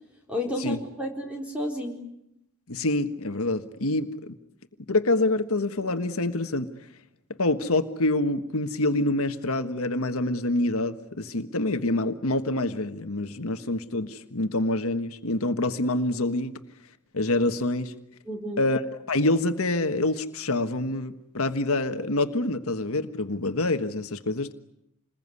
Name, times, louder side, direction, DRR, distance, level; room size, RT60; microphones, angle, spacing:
voice 1, 0.3-1.9 18.3-18.6, left 1 dB, 5° right, 0 dB, 4.4 m, -31 dB
voice 2, 2.7-4.3 4.9-6.7 7.4-16.6 17.1-17.9 18.6-18.8 19.1-24.5, left 2 dB, 75° left, 8 dB, 1.4 m, -26 dB
28.0 x 21.0 x 9.8 m, 0.82 s
head